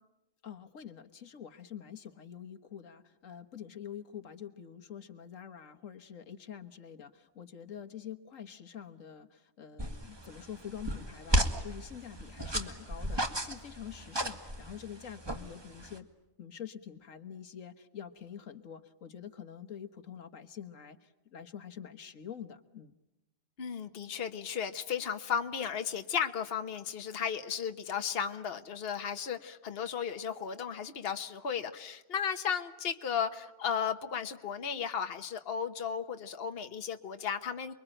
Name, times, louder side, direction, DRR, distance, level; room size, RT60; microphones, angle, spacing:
voice 1, 0.4-16.1 16.4-22.9, left 9 dB, 80° left, 7 dB, 1.7 m, -46 dB
sound 1, 9.8-16.0, right 1 dB, 20° right, 1.8 m, -34 dB
voice 2, 23.6-37.7, left 7 dB, 50° left, 7 dB, 1.4 m, -35 dB
29.0 x 22.5 x 9.0 m, 0.93 s
omnidirectional pair, 1.3 m